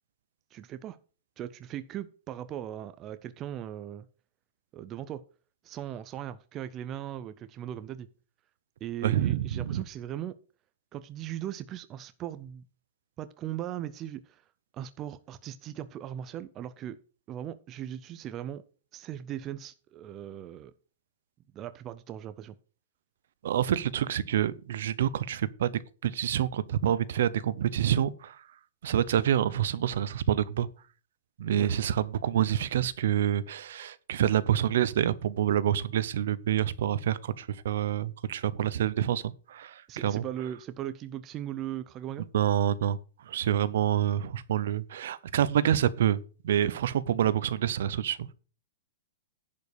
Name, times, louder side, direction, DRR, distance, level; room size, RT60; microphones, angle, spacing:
voice 1, 0.5-1.0 1.4-4.1 4.7-5.2 5.6-8.1 8.8-10.4 10.9-12.6 13.2-14.4 14.7-17.0 17.3-18.6 18.9-20.7 21.5-22.6 31.5-31.7 39.9-42.3, right 11 dB, 20° right, 0.4 m, -38 dB
voice 2, 9.0-9.8 23.4-28.4 28.8-30.7 31.4-40.2 42.3-43.0 43.3-48.3, right 10 dB, 60° right, 0.7 m, -27 dB
10.5 x 5.2 x 6.6 m
supercardioid pair, 175°, 0 cm